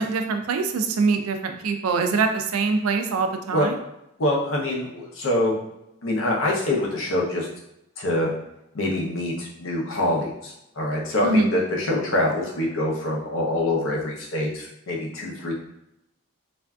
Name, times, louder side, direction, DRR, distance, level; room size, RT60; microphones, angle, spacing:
voice 1, 0.0-3.7 11.2-11.6, right 4 dB, 85° right, 6 dB, 0.4 m, -23 dB
voice 2, 4.2-5.5 6.0-7.5 8.0-8.3 8.7-15.5, left 1 dB, 70° left, -2 dB, 0.7 m, -25 dB
3.3 x 2.5 x 2.3 m, 0.84 s
head